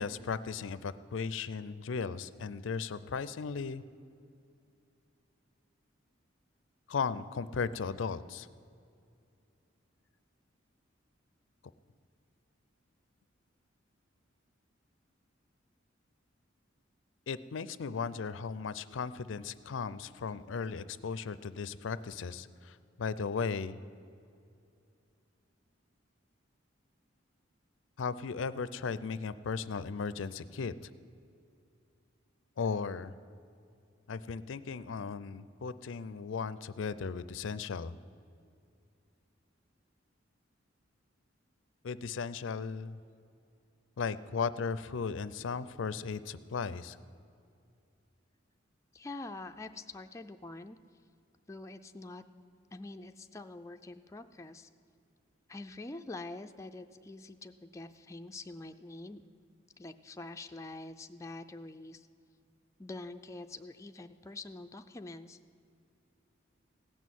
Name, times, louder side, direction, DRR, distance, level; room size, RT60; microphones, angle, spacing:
voice 1, 0.0-3.8 6.9-8.5 17.3-23.8 28.0-30.7 32.6-33.1 34.1-38.0 41.8-43.0 44.0-47.0, left 5 dB, 75° left, 16 dB, 0.5 m, -36 dB
voice 2, 48.9-50.8 51.5-52.2 52.7-54.7 55.5-59.2 59.8-62.1 62.8-65.4, left 2 dB, 15° left, 6 dB, 0.4 m, -45 dB
16.5 x 6.3 x 9.2 m, 2.5 s
head